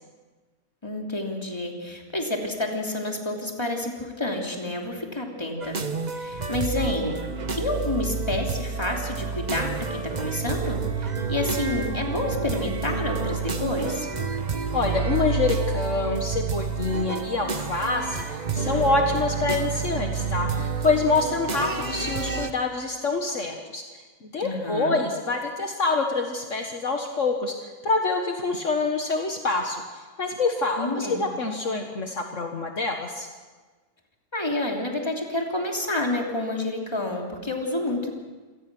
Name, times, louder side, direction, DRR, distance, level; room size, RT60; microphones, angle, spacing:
voice 1, 0.8-5.8 6.1-7.2 7.5-14.1 24.4-25.0 30.8-31.2 34.3-38.1, left 2 dB, 20° left, 1 dB, 3.0 m, -29 dB
sound 1, 5.6-22.5, right 5 dB, 35° right, 1.0 m, -29 dB
voice 2, 14.7-33.3, left 3 dB, 60° left, 3 dB, 1.9 m, -26 dB
27.0 x 18.0 x 6.2 m, 1.3 s
omnidirectional pair, 1.5 m